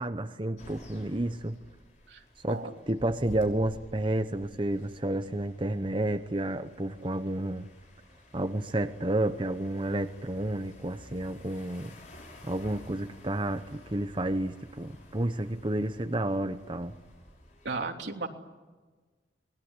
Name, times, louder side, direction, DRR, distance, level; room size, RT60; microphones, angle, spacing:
voice 1, 0.0-1.6 2.4-7.7 8.3-11.9 12.4-17.0, right 1 dB, 30° right, 0.9 m, -31 dB
sound 1, 0.6-17.7, left 1 dB, 45° left, 6.5 m, -52 dB
voice 2, 2.1-2.7 17.6-18.3, right 3 dB, 80° right, 3.2 m, -35 dB
28.0 x 21.0 x 9.8 m
head